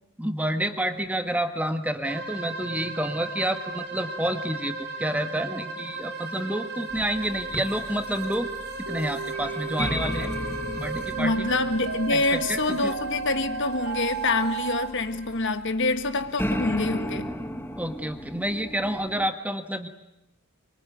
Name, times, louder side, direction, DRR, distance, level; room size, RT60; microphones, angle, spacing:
voice 1, 0.2-8.5 8.9-10.3 10.8-11.5 12.1-12.2 12.5-12.9 17.8-19.9, right 1 dB, 5° right, 1.5 m, -29 dB
sound 1, 2.0-15.6, right 3 dB, 50° right, 3.7 m, -37 dB
sound 2, 6.9-19.3, equal, 10° left, 1.3 m, -35 dB
sound 3, 8.9-14.9, right 5 dB, 80° right, 2.0 m, -34 dB
voice 2, 11.2-17.3, left 3 dB, 55° left, 1.5 m, -26 dB
24.0 x 24.0 x 9.4 m
head